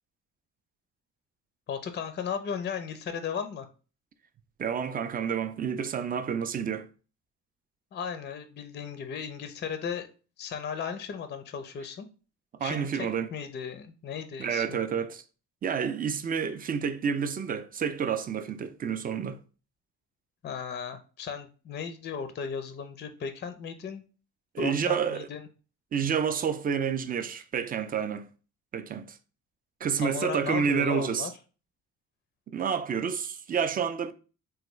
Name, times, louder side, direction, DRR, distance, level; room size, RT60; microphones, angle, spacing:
voice 1, 1.7-3.7 7.9-10.1 10.4-12.1 12.6-14.8 20.4-24.0 24.6-25.5 30.0-31.3, left 7 dB, 35° left, 0.4 m, -36 dB
voice 2, 4.6-6.9 12.6-13.3 14.4-15.2 15.6-19.4 24.5-25.3 25.9-28.3 28.7-29.2 29.8-31.3 32.5-34.1, right 7 dB, 30° right, 0.3 m, -29 dB
3.4 x 2.3 x 3.0 m
cardioid pair, 90°, 30 cm